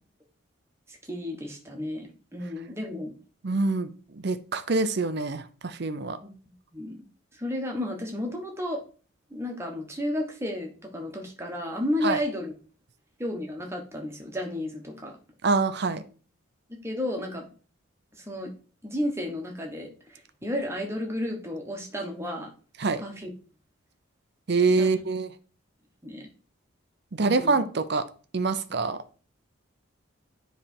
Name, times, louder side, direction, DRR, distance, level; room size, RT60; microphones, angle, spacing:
voice 1, 0.9-3.1 6.2-6.3 6.7-7.0 7.3-8.8 9.3-12.5 13.2-15.1 16.8-17.5 18.1-18.5 18.8-22.5 23.0-23.3 24.8-24.9 26.0-26.3 27.2-27.6, left 1 dB, 10° right, 1 dB, 1.2 m, -32 dB
voice 2, 3.4-6.2 12.0-12.2 15.4-16.0 22.8-23.0 24.5-25.3 27.1-28.0 28.3-29.0, right 3 dB, 50° right, 12 dB, 0.6 m, -25 dB
9.9 x 3.4 x 4.4 m, 0.39 s
head